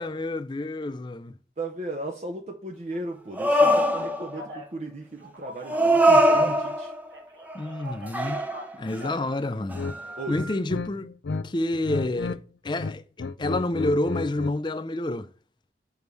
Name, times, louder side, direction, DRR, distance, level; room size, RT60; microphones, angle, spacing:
voice 1, 0.0-1.4 6.1-6.6 7.5-8.4 8.8-9.8 10.3-11.1 11.4-12.4 12.6-15.3, left 1 dB, 25° left, 0.5 m, -29 dB
voice 2, 1.6-6.9 10.2-10.4, right 2 dB, 40° right, 0.7 m, -36 dB
sound 1, 3.4-4.4 5.7-7.0 7.5-9.0 9.7-9.8, equal, 10° right, 0.7 m, -21 dB
Telephone, 4.3-4.7 5.2-6.8 7.1-9.3 9.8-10.5, equal, 90° right, 2.3 m, -42 dB
sound 2, 9.7-10.0 10.3-11.4 11.7-12.4 12.7-14.6, left 3 dB, 90° left, 0.5 m, -32 dB
7.0 x 4.7 x 6.8 m
head